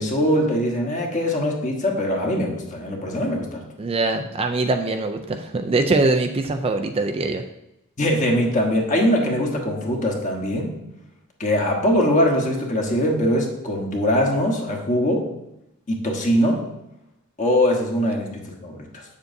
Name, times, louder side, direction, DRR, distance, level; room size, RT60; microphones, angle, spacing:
voice 1, 0.0-3.6 8.0-10.7 11.4-15.3 15.9-16.6 17.4-19.0, equal, 35° left, 0 dB, 1.2 m, -22 dB
voice 2, 3.8-7.4, right 3 dB, 25° right, 6 dB, 0.3 m, -22 dB
7.8 x 7.0 x 2.6 m, 0.88 s
head